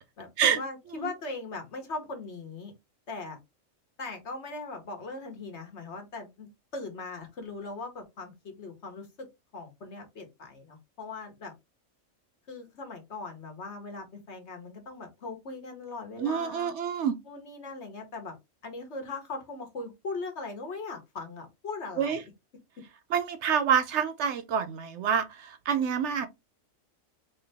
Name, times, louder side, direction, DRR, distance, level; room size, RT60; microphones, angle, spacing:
voice 1, 0.2-2.7 3.1-3.4 4.0-9.3 9.5-11.5 12.5-16.7 17.3-18.4 18.6-22.3, left 3 dB, 60° left, 1.5 m, -40 dB
voice 2, 16.2-17.2 22.0-22.2 23.1-26.3, right 8 dB, 65° right, 0.8 m, -27 dB
3.7 x 2.9 x 3.4 m
omnidirectional pair, 1.3 m